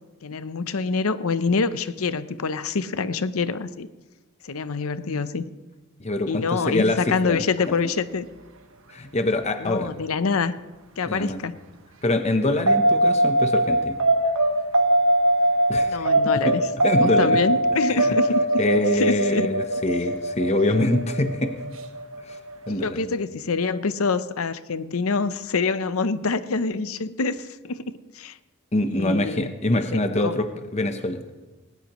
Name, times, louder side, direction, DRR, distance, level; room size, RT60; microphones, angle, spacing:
voice 1, 0.2-3.9 4.4-5.5 6.3-8.3 9.6-10.6 11.0-11.5 15.9-16.6 17.0-18.4 18.9-19.5 22.8-27.8 28.1-28.4 28.8-30.4, left 4 dB, 90° left, 13 dB, 0.7 m, -26 dB
voice 2, 6.0-7.4 8.9-9.9 11.1-11.4 12.0-14.0 15.7-16.1 16.4-16.5 16.8-17.4 18.0-18.1 18.6-21.5 22.3-22.4 22.7-23.1 28.7-30.5 30.7-31.2, left 1 dB, 30° left, 7 dB, 0.9 m, -24 dB
sound 1, 12.7-22.8, right 1 dB, 70° right, 1.3 m, -22 dB
19.5 x 19.0 x 3.1 m, 1.2 s
head